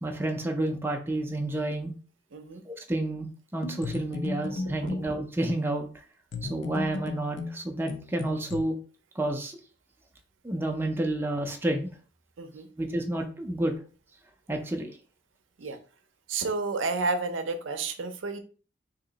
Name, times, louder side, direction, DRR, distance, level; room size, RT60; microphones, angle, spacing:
voice 1, 0.0-1.9 2.7-5.9 6.4-8.8 9.2-9.6 10.4-11.9 12.8-13.7 14.5-14.9, right 1 dB, 10° right, 2 dB, 0.4 m, -30 dB
voice 2, 2.3-2.6 4.6-4.7 12.4-12.7 15.6-15.8 16.3-18.4, right 3 dB, 80° right, 8 dB, 0.5 m, -31 dB
sound 1, 3.6-5.1 6.3-8.6, left 3 dB, 70° left, 0.5 m, -35 dB
2.9 x 2.8 x 3.8 m, 0.40 s
head